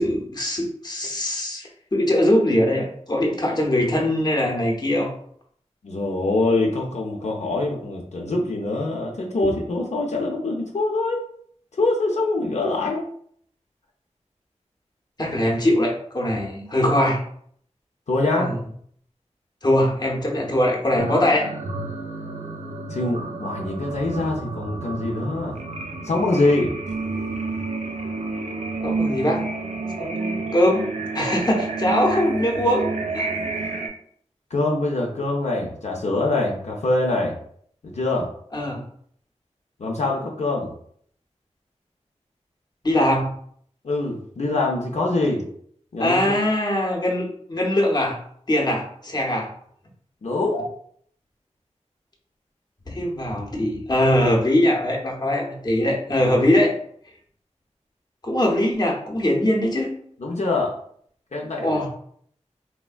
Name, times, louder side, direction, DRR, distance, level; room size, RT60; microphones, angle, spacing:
voice 1, 0.0-5.1 15.2-17.2 18.3-18.6 19.6-21.5 28.8-29.4 30.0-32.9 33.1-33.3 38.5-38.8 42.8-43.3 46.0-48.2 48.5-49.5 52.9-56.7 58.2-59.9 61.6-61.9, left 1 dB, 35° left, -1 dB, 0.7 m, -21 dB
voice 2, 5.8-11.3 11.8-13.0 18.1-18.5 22.9-25.5 26.0-26.7 34.5-37.4 37.8-38.3 39.8-40.7 43.8-45.5 45.9-46.3 50.2-50.7 60.2-60.7 61.3-61.9, left 2 dB, 70° left, -2 dB, 0.5 m, -24 dB
sound 1, 21.0-33.9, right 3 dB, 75° right, 0.4 m, -30 dB
3.3 x 2.1 x 2.3 m, 0.62 s
wide cardioid pair, 70°, 12 cm